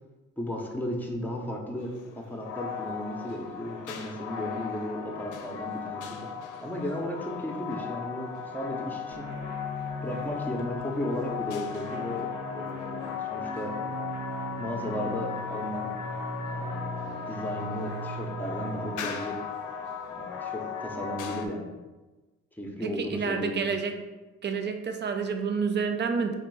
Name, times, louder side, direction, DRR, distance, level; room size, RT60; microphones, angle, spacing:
voice 1, 0.4-6.3 6.6-9.3 10.0-13.8 14.6-15.9 16.5-19.4 20.1-21.7 22.6-23.7, left 1 dB, 5° left, 1 dB, 0.8 m, -35 dB
sound 1, 1.8-21.5, left 7 dB, 80° left, 0.6 m, -37 dB
sound 2, 9.1-19.0, right 1 dB, 70° right, 1.1 m, -39 dB
voice 2, 22.8-24.0 24.4-26.3, right 5 dB, 35° right, 6 dB, 0.6 m, -29 dB
3.2 x 3.1 x 4.7 m, 1.2 s
cardioid pair, 90°, 30 cm